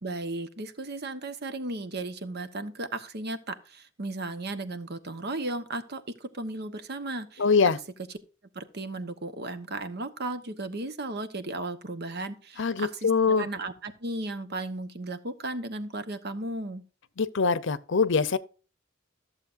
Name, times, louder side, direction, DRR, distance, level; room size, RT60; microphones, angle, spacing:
voice 1, 0.0-7.4 8.5-16.8, right 2 dB, 55° right, 1.1 m, -35 dB
voice 2, 7.4-7.8 12.6-13.5 17.2-18.4, left 5 dB, 65° left, 0.7 m, -23 dB
14.0 x 7.4 x 2.6 m
head